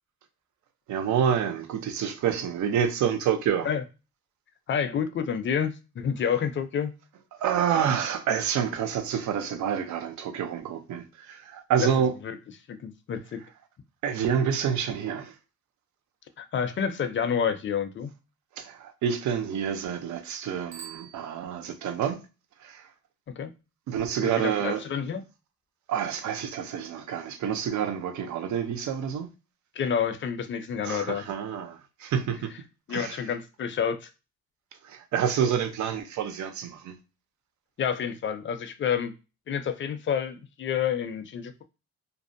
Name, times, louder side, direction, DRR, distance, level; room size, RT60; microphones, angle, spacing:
voice 1, 0.9-3.7 7.4-12.1 14.0-15.3 18.6-22.2 22.6-22.9 23.9-24.8 25.9-29.3 30.8-32.6 32.9-33.2 34.8-37.0, right 8 dB, 70° right, 0.6 m, -28 dB
voice 2, 4.7-6.9 11.8-11.9 12.2-12.4 12.7-13.4 16.4-18.1 23.4-23.5 24.2-25.2 29.8-31.2 32.9-34.1 37.8-39.1 39.5-41.6, left 7 dB, 40° left, 0.5 m, -29 dB
Bicycle bell, 20.7-22.0, right 8 dB, 45° right, 1.0 m, -47 dB
2.6 x 2.1 x 2.6 m
cardioid pair, 90°, 30 cm